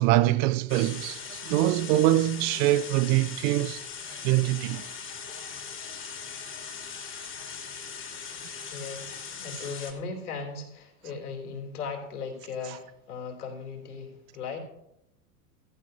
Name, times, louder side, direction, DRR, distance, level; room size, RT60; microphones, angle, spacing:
voice 1, 0.0-3.8 4.2-4.8, right 15 dB, 40° right, 0.6 m, -24 dB
sound 1, 0.7-9.9, left 6 dB, 25° left, 2.9 m, -40 dB
voice 2, 8.7-14.6, left 5 dB, 75° left, 3.2 m, -37 dB
16.0 x 14.0 x 2.7 m
hypercardioid pair, 95°, 45 cm